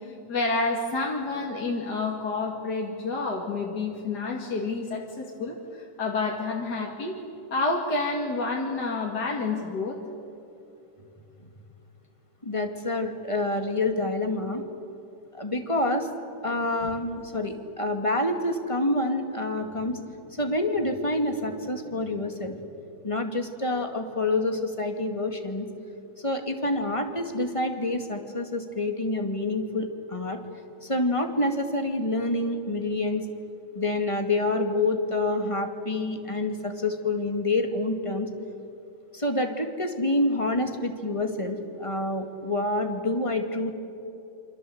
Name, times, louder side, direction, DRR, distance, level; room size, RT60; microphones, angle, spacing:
voice 1, 0.3-7.1 7.5-10.0, left 3 dB, 55° left, -1 dB, 2.7 m, -29 dB
voice 2, 12.4-14.6 15.3-16.1 16.4-20.0 20.3-22.6 23.0-25.7 26.2-30.4 30.8-33.2 33.7-38.3 39.1-43.7, left 2 dB, 15° left, 5 dB, 2.1 m, -27 dB
27.5 x 26.0 x 8.0 m, 2.8 s
omnidirectional pair, 2.1 m